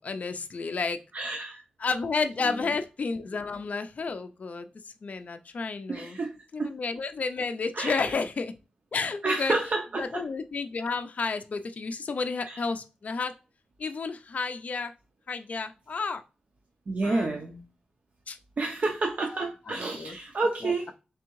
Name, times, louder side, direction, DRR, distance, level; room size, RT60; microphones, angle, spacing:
voice 1, 0.0-1.0 1.8-6.2 6.5-8.5 8.9-9.6 10.0-13.3 13.8-14.9 15.3-16.2 17.0-17.3 18.3-18.4 19.3-20.2 20.6-20.9, left 4 dB, 55° left, 8 dB, 0.3 m, -31 dB
voice 2, 1.1-1.6 5.9-6.7 7.7-8.0 9.2-10.2 12.5-12.6 16.9-17.6 18.6-20.9, right 3 dB, 60° right, 2 dB, 0.6 m, -29 dB
3.4 x 3.3 x 3.0 m, 0.31 s
wide cardioid pair, 85°, 3 cm